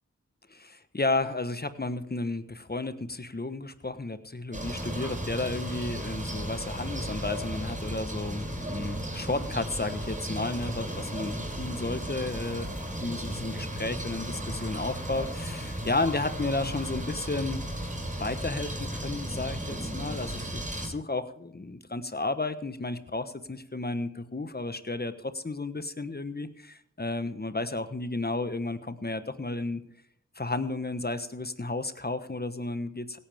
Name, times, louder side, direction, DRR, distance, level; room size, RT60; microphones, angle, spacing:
voice 1, 0.5-12.7 13.0-17.6 18.2-29.8 30.3-33.2, left 2 dB, 30° left, 11 dB, 1.2 m, -33 dB
sound 1, 4.5-20.9, right 1 dB, 25° right, 6.3 m, -35 dB
17.0 x 12.5 x 3.6 m, 0.74 s
cardioid pair, 40°, 31 cm